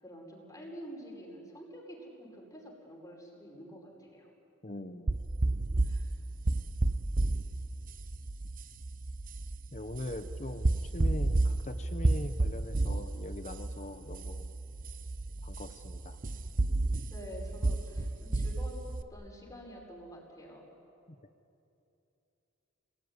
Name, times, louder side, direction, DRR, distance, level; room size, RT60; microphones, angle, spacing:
voice 1, 0.0-4.3 5.8-6.2 17.1-18.8 19.1-20.6, equal, 20° left, -2 dB, 5.5 m, -48 dB
voice 2, 4.6-5.2 9.7-14.5 15.4-16.2, left 1 dB, 35° left, 8 dB, 1.1 m, -41 dB
sound 1, 5.1-19.0, right 2 dB, 40° right, 0.8 m, -32 dB
29.5 x 20.0 x 9.9 m, 2.8 s
head